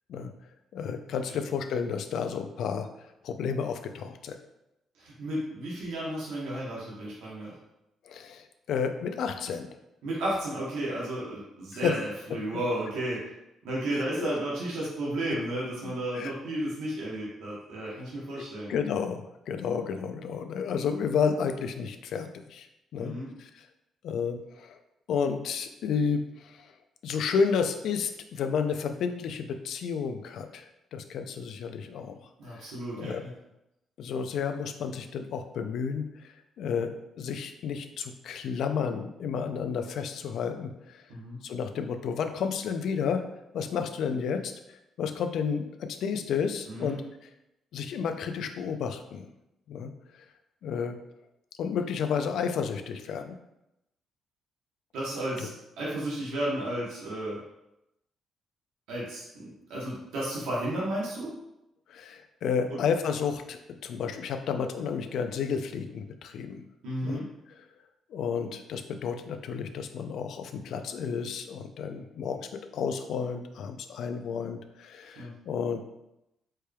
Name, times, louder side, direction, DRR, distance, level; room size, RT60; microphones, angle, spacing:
voice 1, 0.7-2.9 3.2-4.4 8.1-9.7 11.8-11.9 13.9-14.3 15.8-16.3 18.7-22.7 22.9-23.1 23.4-23.7 24.0-24.8 25.1-26.6 27.0-32.2 32.5-33.2 34.0-36.0 36.6-41.0 41.4-43.2 43.5-44.5 45.0-47.0 47.7-49.3 49.7-49.9 50.6-51.0 51.6-53.4 55.4-55.5 61.9-66.6 67.0-67.2 68.1-75.8, left 6 dB, 75° left, 7 dB, 0.4 m, -31 dB
voice 2, 5.0-7.5 10.0-13.2 13.6-18.7 23.0-23.3 32.4-33.3 41.1-41.4 46.7-47.0 54.9-55.5 55.8-57.4 58.9-61.3 62.7-62.8 66.8-67.2 75.2-75.3, right 1 dB, 90° right, -6 dB, 1.1 m, -33 dB
4.4 x 3.3 x 2.3 m, 0.88 s
cardioid pair, 90°, 0 cm